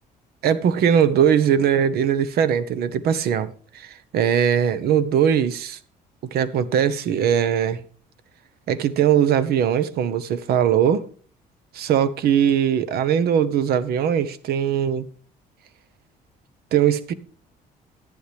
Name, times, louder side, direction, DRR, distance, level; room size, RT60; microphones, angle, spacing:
voice 1, 0.4-5.8 6.3-7.8 8.7-11.0 11.7-15.0 16.7-17.1, right 8 dB, 70° right, 1.0 m, -20 dB
11.0 x 10.0 x 3.4 m
cardioid pair, 110°, 17 cm